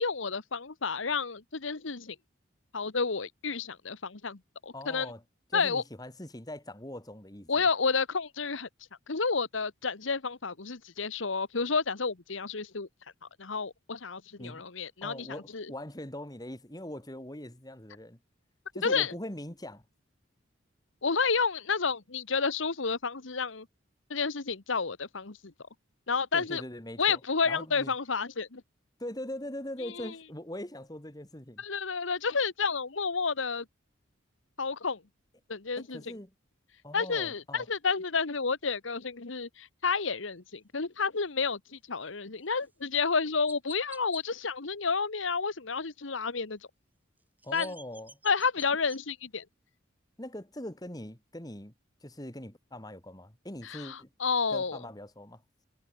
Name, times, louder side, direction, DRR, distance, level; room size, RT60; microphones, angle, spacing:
voice 1, 0.0-2.1 2.7-5.1 5.5-5.8 7.5-8.7 9.1-12.9 13.4-15.3 15.5-15.7 18.8-19.1 21.0-23.7 24.1-25.5 26.1-26.6 27.0-28.6 30.0-30.1 31.6-33.6 34.6-35.0 35.5-36.0 36.9-46.6 47.5-47.7 48.2-49.4 53.6-54.8, left 5 dB, 75° left, 1.3 m, -30 dB
voice 2, 4.7-5.2 5.5-7.5 14.4-14.6 15.0-18.2 18.7-19.8 26.3-27.2 27.5-27.9 29.0-31.6 35.8-36.3 36.8-37.7 47.4-48.2 50.2-51.7 52.0-54.1 54.5-55.4, left 1 dB, 20° left, 2.5 m, -41 dB
Chirp tweet, 42.6-42.7 43.5-44.2 47.2-49.0, right 2 dB, 10° right, 4.3 m, -49 dB
head